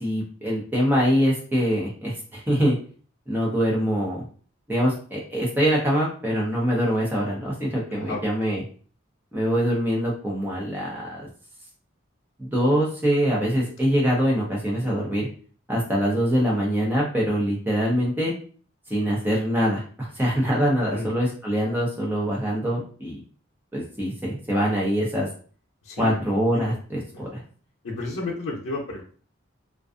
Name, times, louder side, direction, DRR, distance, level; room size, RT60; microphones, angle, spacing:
voice 1, 0.0-2.8 3.3-4.2 4.7-8.6 9.3-11.2 12.4-15.3 15.7-18.3 18.9-23.2 23.7-25.3 26.0-27.4, equal, 10° right, -4 dB, 0.7 m, -24 dB
voice 2, 7.9-8.2 14.2-14.5 14.8-15.0 20.9-21.1 25.8-26.2 26.5-26.7 27.8-29.0, left 2 dB, 90° left, -6 dB, 0.6 m, -32 dB
2.5 x 2.3 x 2.4 m, 0.42 s
head